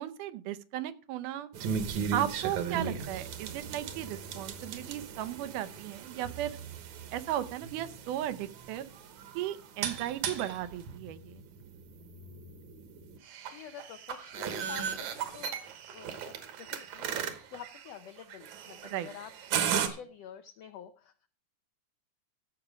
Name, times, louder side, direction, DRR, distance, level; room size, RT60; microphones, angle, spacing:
voice 1, 0.0-1.5 2.1-6.6 7.1-8.9 9.4-11.4 18.8-19.1, right 12 dB, 85° right, 13 dB, 2.3 m, -35 dB
sound 1, 1.5-19.9, right 7 dB, 70° right, 2.3 m, -37 dB
voice 2, 13.5-15.6 15.9-17.1 17.4-21.3, left 9 dB, 85° left, 10 dB, 1.4 m, -48 dB
15.0 x 6.0 x 4.9 m, 0.39 s
omnidirectional pair, 3.6 m